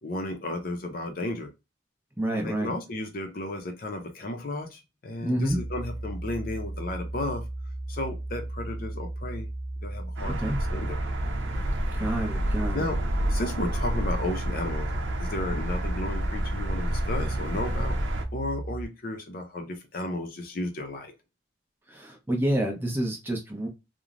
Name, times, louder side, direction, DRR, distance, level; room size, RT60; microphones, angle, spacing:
voice 1, 0.0-1.5 2.3-7.4 7.9-9.5 9.8-11.0 12.7-13.0 13.3-18.0 18.3-21.1, left 2 dB, 50° left, 0.5 m, -33 dB
voice 2, 2.2-2.7 5.2-5.6 10.4-10.6 11.9-12.8 21.9-23.7, right 1 dB, 10° right, 0.6 m, -28 dB
sound 1, 5.4-18.9, right 1 dB, 60° right, 1.1 m, -35 dB
sound 2, 10.2-18.3, right 1 dB, 75° right, 0.5 m, -30 dB
3.1 x 2.0 x 2.4 m
head